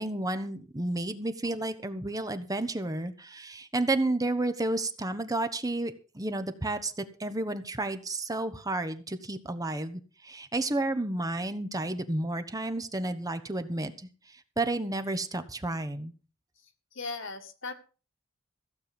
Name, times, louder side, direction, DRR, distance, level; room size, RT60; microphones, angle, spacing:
voice 1, 0.0-16.1, right 2 dB, 15° right, 10 dB, 1.1 m, -31 dB
voice 2, 16.9-17.7, left 3 dB, 60° left, 6 dB, 2.1 m, -37 dB
15.5 x 7.7 x 6.9 m, 0.36 s
head